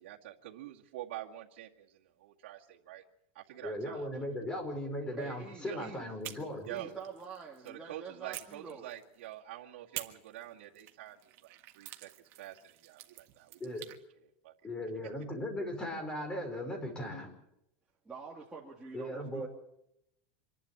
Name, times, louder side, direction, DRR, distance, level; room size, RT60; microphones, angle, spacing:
voice 1, 0.0-3.0 3.3-4.1 5.6-5.9 6.7-6.9 7.6-12.1 12.4-13.6 14.4-14.5, right 14 dB, 80° right, -3 dB, 2.1 m, -46 dB
voice 2, 3.6-6.7 13.6-13.9 14.6-17.3 18.9-19.5, left 1 dB, 15° left, 5 dB, 5.2 m, -38 dB
voice 3, 5.2-6.1 6.7-8.9 18.0-19.5, right 5 dB, 10° right, -6 dB, 2.9 m, -46 dB
sound 1, 6.2-7.8 8.3-9.3 9.9-14.0, right 15 dB, 45° right, 1.7 m, -48 dB
26.5 x 11.5 x 8.7 m, 0.81 s
supercardioid pair, 145°, 6 cm